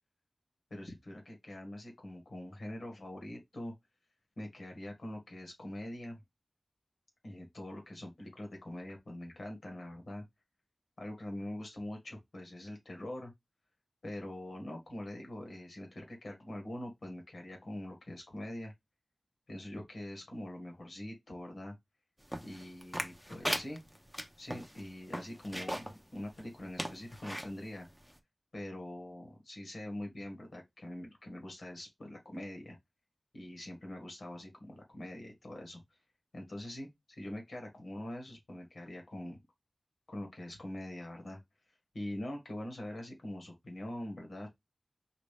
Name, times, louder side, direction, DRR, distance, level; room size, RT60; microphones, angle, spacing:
voice 1, 0.7-3.7 4.4-6.2 7.2-10.2 11.0-13.3 14.0-18.7 19.5-21.8 22.4-23.8 24.4-27.9 28.5-32.8 33.3-35.8 36.3-36.9 37.2-39.4 40.1-41.4 41.9-44.5, left 1 dB, 80° left, 1.9 m, -43 dB
sound 1, 22.3-26.0 26.4-26.5 26.8-27.5 28.1-28.2, equal, ahead, 0.8 m, -38 dB
5.1 x 2.9 x 3.4 m
wide cardioid pair, 55°, 0 cm